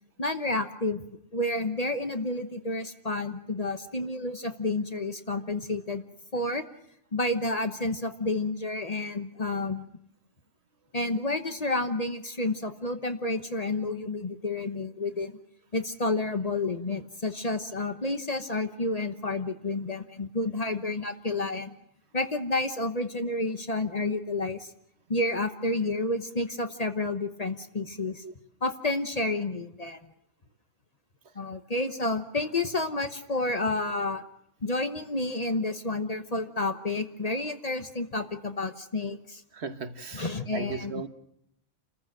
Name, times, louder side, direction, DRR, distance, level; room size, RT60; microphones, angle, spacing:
voice 1, 0.2-1.0 1.3-6.0 6.3-6.6 7.1-9.9 10.9-15.4 15.7-21.8 22.1-24.7 25.1-28.2 28.6-30.0 31.3-34.2 34.6-39.4 40.1-41.1, left 2 dB, 35° left, 8 dB, 1.1 m, -30 dB
voice 2, 39.5-41.1, right 5 dB, 60° right, 10 dB, 1.4 m, -37 dB
28.5 x 14.5 x 7.6 m, 0.75 s
omnidirectional pair, 1.3 m